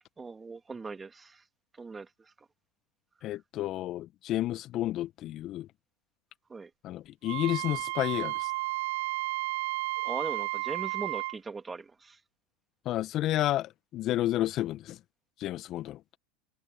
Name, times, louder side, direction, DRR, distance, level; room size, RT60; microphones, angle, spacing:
voice 1, 0.2-1.4 1.7-2.3 6.5-6.7 10.0-12.2, right 4 dB, 20° right, 2.3 m, -40 dB
voice 2, 3.2-5.7 6.8-8.5 12.9-15.0 15.4-16.0, left 14 dB, 45° left, 1.6 m, -31 dB
Wind instrument woodwind instrument, 7.3-11.4, right 23 dB, 60° right, 0.3 m, -32 dB
hypercardioid pair, 85°, 0 cm